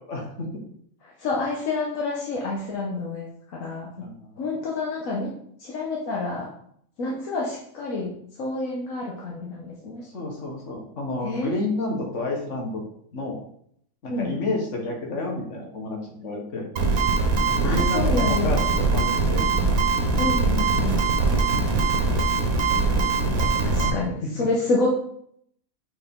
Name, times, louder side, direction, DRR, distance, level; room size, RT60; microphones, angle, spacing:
voice 1, 0.1-0.5 4.0-4.4 10.0-12.8 13.1-13.4 14.0-16.7 17.4-19.5 23.3-24.0, left 2 dB, 60° left, 0 dB, 1.8 m, -30 dB
voice 2, 1.0-3.9 4.4-5.3 5.6-6.5 7.0-8.1 8.4-10.0 11.2-11.5 14.1-14.6 17.6-18.5 20.2-21.0 23.1-23.2 23.6-24.9, left 3 dB, 75° left, -3 dB, 1.4 m, -28 dB
sound 1, 16.8-23.9, right 3 dB, 85° right, 1.5 m, -22 dB
6.4 x 4.9 x 3.7 m, 0.67 s
omnidirectional pair, 1.4 m